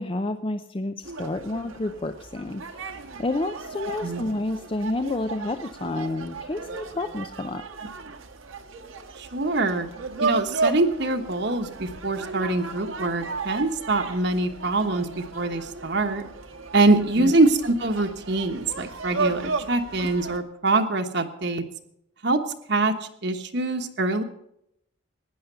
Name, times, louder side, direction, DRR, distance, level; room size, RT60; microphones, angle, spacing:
voice 1, 0.0-2.8 3.2-7.6 17.2-17.3, left 2 dB, 25° left, 8 dB, 0.5 m, -29 dB
sound 1, 1.0-20.4, right 4 dB, 85° right, 1.6 m, -34 dB
voice 2, 9.2-9.9 10.2-16.2 16.7-21.6 22.2-22.4 22.7-24.2, right 2 dB, 55° right, 6 dB, 1.2 m, -24 dB
16.0 x 10.5 x 6.8 m, 0.76 s
head